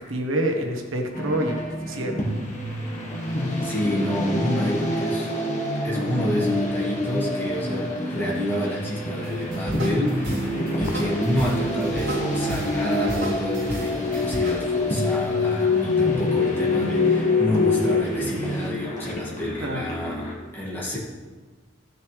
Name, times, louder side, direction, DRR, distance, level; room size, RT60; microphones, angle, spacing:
voice 1, 0.1-2.2 19.6-19.9, right 1 dB, 85° right, 2 dB, 1.3 m, -27 dB
sound 1, 1.1-20.3, equal, 40° left, 1.9 m, -28 dB
voice 2, 3.6-5.3 5.8-21.0, equal, 10° left, -7 dB, 2.3 m, -28 dB
sound 2, 9.2-14.6, right 1 dB, 65° right, 3.1 m, -34 dB
sound 3, 10.9-11.0 11.7-18.0, left 6 dB, 90° left, 0.3 m, -25 dB
14.5 x 6.5 x 3.5 m, 1.4 s
head